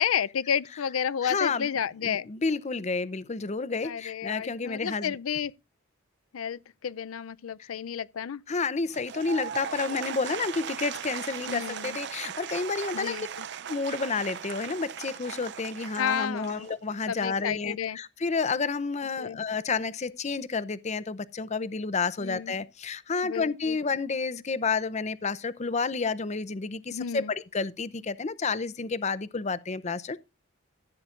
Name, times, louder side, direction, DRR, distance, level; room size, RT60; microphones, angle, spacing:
voice 1, 0.0-2.3 3.8-5.5 6.3-8.4 11.5-12.0 12.9-13.5 16.0-16.7 17.1-18.0 19.2-19.4 22.2-22.5 23.2-23.8 26.9-27.3, left 8 dB, 80° left, 0.5 m, -31 dB
voice 2, 1.2-1.7 2.0-5.2 7.6-7.7 8.5-13.3 13.7-30.2, left 4 dB, 35° left, 0.6 m, -30 dB
Applause / Crowd, 8.9-17.1, right 8 dB, 55° right, 0.5 m, -38 dB
15.0 x 8.5 x 2.5 m
head